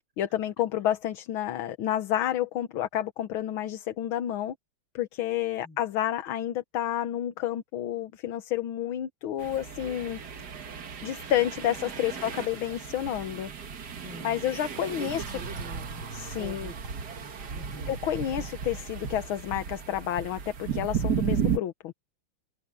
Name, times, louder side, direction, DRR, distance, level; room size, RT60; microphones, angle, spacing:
voice 1, 0.2-4.6 5.0-10.2 11.0-13.5 14.2-15.2 16.1-16.7 17.9-21.9, left 11 dB, 80° left, 1.8 m, -30 dB
sound 1, 9.4-21.6, right 7 dB, 55° right, 1.9 m, -34 dB
voice 2, 14.0-14.4 14.9-16.1 16.4-16.8 17.1-18.0, right 2 dB, 70° right, 5.0 m, -44 dB
omnidirectional pair, 2.2 m